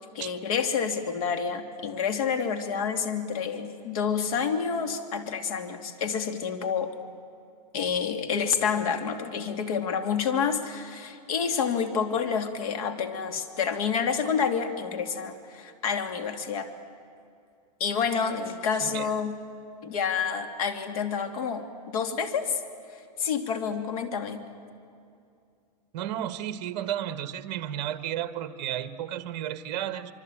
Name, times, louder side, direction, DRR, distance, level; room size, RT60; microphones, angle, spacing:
voice 1, 0.1-6.9 7.7-16.7 17.8-19.4 19.8-22.6 23.2-24.4, left 6 dB, 60° left, 7 dB, 2.7 m, -28 dB
voice 2, 25.9-30.1, right 11 dB, 45° right, 11 dB, 1.5 m, -33 dB
26.0 x 24.5 x 8.8 m, 2.5 s
supercardioid pair, 155°, 21 cm